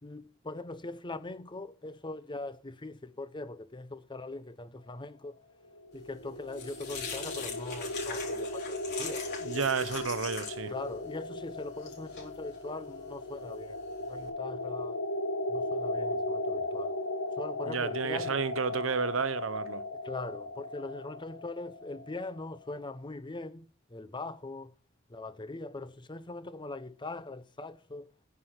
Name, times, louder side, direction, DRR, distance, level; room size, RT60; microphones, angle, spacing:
voice 1, 0.0-5.4 5.9-9.7 10.7-13.8 14.1-15.0 15.5-17.0 17.4-18.4 20.0-24.7 25.1-28.1, left 2 dB, 25° left, 0.7 m, -41 dB
sound 1, 5.7-22.6, left 2 dB, 85° left, 1.1 m, -37 dB
sound 2, 6.0-14.3, left 5 dB, 55° left, 4.0 m, -43 dB
voice 2, 9.4-10.7 17.7-19.8, right 5 dB, 75° right, 0.8 m, -31 dB
9.7 x 5.8 x 5.9 m
head